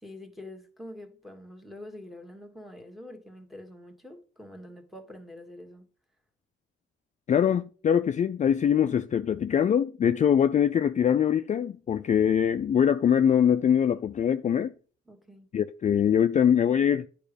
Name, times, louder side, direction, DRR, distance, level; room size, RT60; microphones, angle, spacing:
voice 1, 0.0-5.9 15.1-15.5, left 1 dB, ahead, 1.5 m, -45 dB
voice 2, 7.3-14.7 15.5-17.1, left 8 dB, 40° left, 0.4 m, -23 dB
9.1 x 5.0 x 5.1 m
cardioid pair, 90°, 20 cm